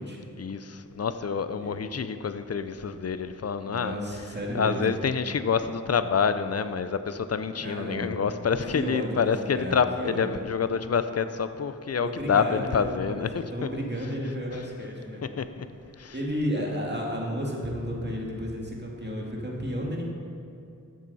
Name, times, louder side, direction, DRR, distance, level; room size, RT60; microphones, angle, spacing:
voice 1, 0.4-4.0 4.5-13.4 15.4-15.7 16.0-16.1, left 6 dB, 50° left, 11 dB, 0.6 m, -27 dB
voice 2, 3.6-5.0 7.6-8.1 8.7-10.3 12.0-15.3 16.1-20.1, equal, 30° right, -2 dB, 2.1 m, -32 dB
13.5 x 7.6 x 4.2 m, 2.6 s
wide cardioid pair, 55°, 33 cm